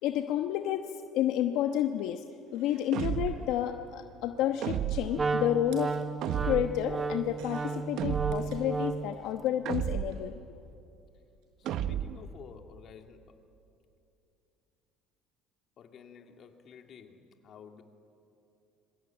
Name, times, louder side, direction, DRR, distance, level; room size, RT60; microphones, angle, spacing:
voice 1, 0.0-2.2 2.5-6.0 6.4-10.4, left 11 dB, 75° left, 5 dB, 1.1 m, -30 dB
sound 1, 2.0-2.1 2.4-9.2 9.4-10.3 11.3-11.4 11.7-11.8, right 5 dB, 75° right, 5.8 m, -58 dB
sound 2, 2.9-3.6 4.6-5.3 6.2-6.8 8.0-8.6 9.6-10.3 11.6-12.3, right 10 dB, 60° right, 1.0 m, -33 dB
Wind instrument woodwind instrument, 5.1-9.2, right 4 dB, 25° right, 1.1 m, -33 dB
voice 2, 11.6-13.4 15.8-17.8, left 7 dB, 45° left, 4 dB, 2.5 m, -52 dB
26.5 x 23.5 x 8.8 m, 2.7 s
cardioid pair, 125°, 0 cm